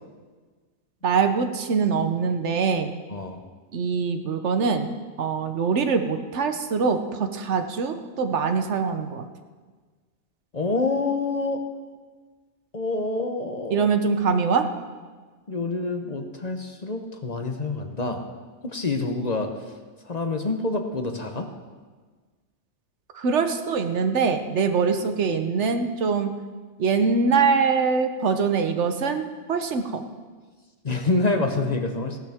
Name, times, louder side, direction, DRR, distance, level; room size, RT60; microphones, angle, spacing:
voice 1, 1.0-2.9 3.7-4.9 5.2-9.2 13.7-14.7 23.1-26.3 26.8-30.0, right 5 dB, 75° right, 7 dB, 1.2 m, -23 dB
voice 2, 3.1-3.4 10.5-11.6 12.7-13.9 15.5-18.2 18.6-19.5 20.1-21.5 30.8-32.2, left 3 dB, 40° left, 5 dB, 0.9 m, -27 dB
16.5 x 12.0 x 3.5 m, 1.4 s
omnidirectional pair, 1.2 m